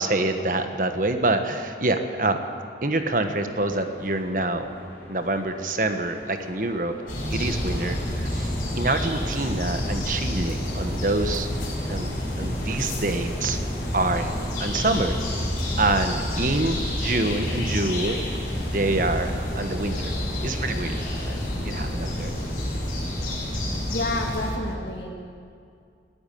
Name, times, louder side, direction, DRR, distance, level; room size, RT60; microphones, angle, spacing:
voice 1, 0.0-2.4 2.8-4.7 5.1-7.0 7.3-11.5 11.9-13.6 13.9-14.3 14.6-15.2 15.8-18.2 18.7-20.2 20.4-22.3, right 2 dB, 45° right, 7 dB, 1.4 m, -26 dB
sound 1, 3.0-22.5, left 1 dB, 10° left, 4.7 m, -45 dB
sound 2, 7.1-24.5, left 1 dB, 50° left, 6.6 m, -28 dB
voice 2, 23.9-25.1, left 2 dB, 70° left, -1 dB, 2.5 m, -30 dB
20.5 x 14.0 x 9.3 m, 2.3 s
head